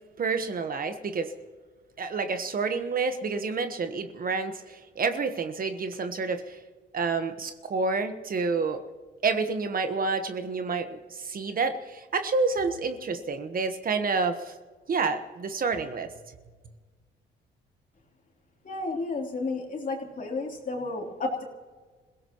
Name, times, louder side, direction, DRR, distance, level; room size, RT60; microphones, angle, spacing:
voice 1, 0.2-1.3 2.0-6.6 6.9-8.8 9.2-14.5 14.9-16.1, right 4 dB, 45° right, 8 dB, 1.3 m, -29 dB
voice 2, 18.6-21.4, left 3 dB, 40° left, 0 dB, 3.5 m, -32 dB
27.0 x 17.0 x 3.1 m, 1.4 s
cardioid pair, 90°, 20 cm